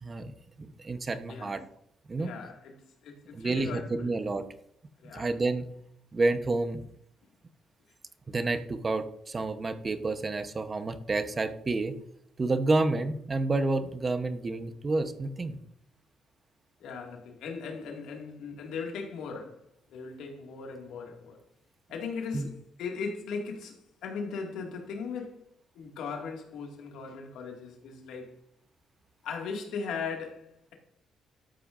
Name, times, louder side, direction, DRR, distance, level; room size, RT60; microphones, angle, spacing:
voice 1, 0.0-1.6 2.1-2.3 3.3-4.4 5.1-5.7 6.1-6.8 8.3-12.0 12.4-15.6 22.3-22.5, right 3 dB, 30° right, 0.9 m, -29 dB
voice 2, 2.2-4.1 5.0-5.3 16.8-19.6 19.9-21.4 21.9-25.4 25.7-28.4 29.2-30.7, left 5 dB, 85° left, 2.0 m, -38 dB
12.5 x 8.4 x 2.5 m
cardioid pair, 90°, 0 cm